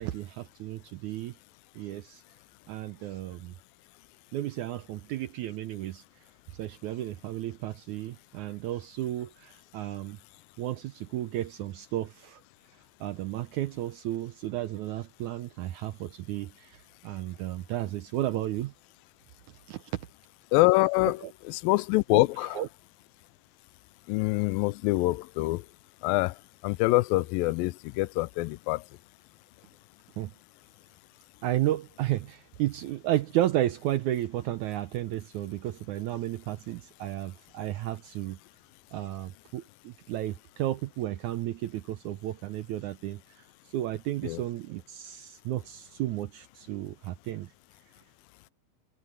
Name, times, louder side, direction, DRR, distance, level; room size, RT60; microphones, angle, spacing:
voice 1, 0.0-1.4 1.8-2.2 2.7-3.5 4.3-6.0 6.6-10.2 10.6-12.4 13.0-18.7 19.7-19.8 21.2-21.3 22.1-22.2 22.5-22.7 30.2-30.3 31.4-38.4 38.9-43.4 43.7-47.5, right 14 dB, 80° right, 1.8 m, -33 dB
voice 2, 20.5-21.2 21.5-22.6 24.1-25.7 26.0-26.4 26.6-28.8 44.2-44.4, left 20 dB, 85° left, 2.2 m, -25 dB
omnidirectional pair, 4.1 m